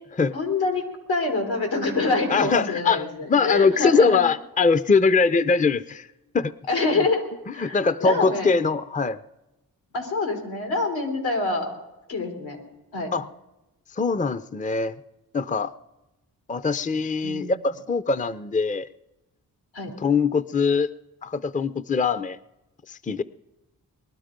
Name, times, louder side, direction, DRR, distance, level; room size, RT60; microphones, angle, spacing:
voice 1, 0.3-0.8 1.1-4.2 6.7-7.2 7.5-8.5 9.9-11.7 12.1-12.6 12.9-13.1 17.2-17.6 19.7-19.9, left 3 dB, 90° left, 3 dB, 3.5 m, -26 dB
voice 2, 2.3-3.0 3.3-6.1 6.3-6.5 7.6-9.2 13.1-13.3 14.0-15.0 15.3-15.7 16.5-18.9 20.0-20.9 21.2-22.4 22.9-23.2, left 4 dB, 20° left, 16 dB, 0.6 m, -22 dB
20.5 x 12.5 x 5.2 m, 0.98 s
cardioid pair, 55°, 37 cm